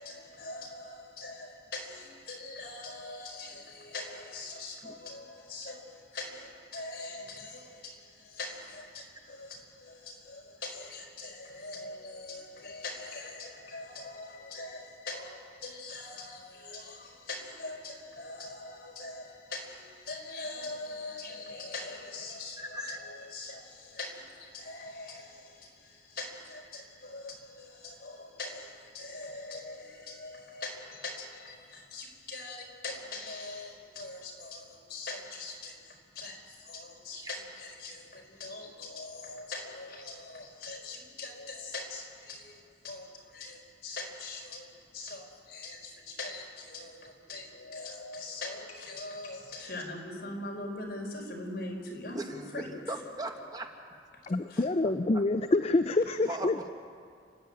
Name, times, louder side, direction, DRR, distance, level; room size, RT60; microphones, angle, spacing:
voice 1, 0.0-52.7 54.5-54.6, left 2 dB, 65° left, 1 dB, 4.7 m, -42 dB
voice 2, 22.6-23.0 37.1-37.3 52.1-53.7 56.2-56.5, right 1 dB, 20° right, 3 dB, 1.3 m, -38 dB
voice 3, 54.3-56.7, left 2 dB, 35° left, 10 dB, 0.4 m, -27 dB
29.0 x 12.0 x 8.9 m, 2.3 s
head